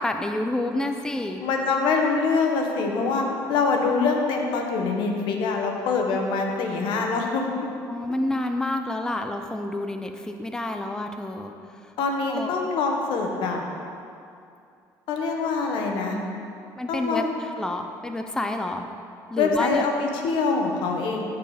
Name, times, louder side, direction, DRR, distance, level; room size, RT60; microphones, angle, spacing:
voice 1, 0.0-1.5 7.9-11.9 12.3-12.6 16.8-18.9 19.3-19.8, left 1 dB, 5° left, 5 dB, 0.6 m, -29 dB
voice 2, 1.4-7.5 12.0-13.6 15.1-16.2 16.9-17.3 19.4-21.2, left 4 dB, 75° left, 2 dB, 1.4 m, -24 dB
14.0 x 4.7 x 5.0 m, 2.5 s
supercardioid pair, 85°, 8 cm